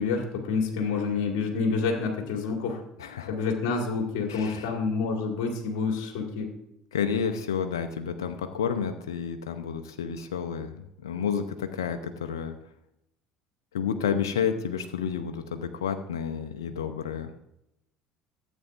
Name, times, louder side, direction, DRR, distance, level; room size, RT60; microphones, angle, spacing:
voice 1, 0.0-2.8 3.3-6.5, left 4 dB, 70° left, 2 dB, 2.0 m, -28 dB
voice 2, 3.0-3.3 4.3-4.7 6.9-12.6 13.7-17.3, left 7 dB, 90° left, 7 dB, 0.7 m, -30 dB
14.0 x 8.3 x 2.5 m, 0.80 s
hypercardioid pair, 70°, 2 cm